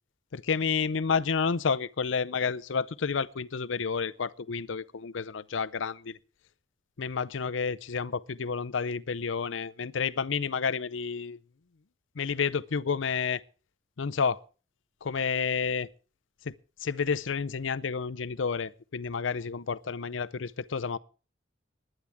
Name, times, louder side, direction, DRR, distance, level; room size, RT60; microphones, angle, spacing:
voice 1, 0.3-6.2 7.0-11.4 12.2-13.4 14.0-14.4 15.0-15.9 16.5-16.6 16.8-21.0, left 5 dB, 85° left, 0.6 m, -30 dB
20.0 x 10.0 x 3.5 m
head